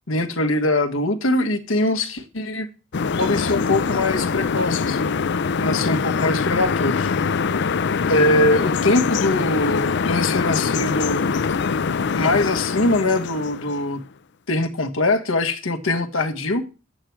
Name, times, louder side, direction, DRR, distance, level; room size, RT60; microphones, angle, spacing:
voice 1, 0.1-2.7 3.2-5.1 5.6-7.1 8.1-11.3 12.1-14.0 14.5-16.7, left 2 dB, 85° left, 1.5 m, -22 dB
sound 1, 2.9-14.0, left 5 dB, 60° left, 0.5 m, -23 dB
11.0 x 8.7 x 4.6 m
head